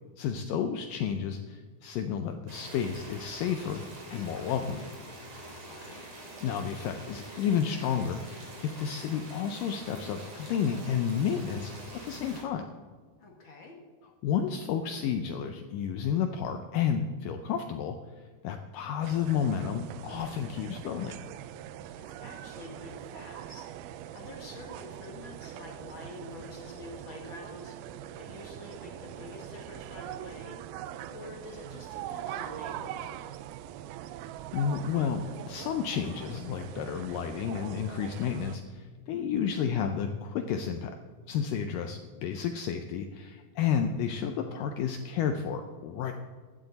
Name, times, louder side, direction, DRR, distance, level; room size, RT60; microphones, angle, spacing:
voice 1, 0.2-3.8 4.1-4.9 6.4-11.7 12.0-12.6 14.2-18.0 18.4-21.2 34.5-41.0 41.3-46.1, left 8 dB, 85° left, 6 dB, 1.9 m, -31 dB
sound 1, 2.5-12.4, right 1 dB, 45° right, 3.9 m, -45 dB
voice 2, 5.6-6.1 13.2-13.7 21.9-27.8 28.1-30.6 31.1-33.2, left 2 dB, 50° left, 0 dB, 1.5 m, -47 dB
sound 2, 19.0-38.6, right 12 dB, 80° right, 2.3 m, -42 dB
15.5 x 12.0 x 4.1 m, 1.5 s
omnidirectional pair, 4.6 m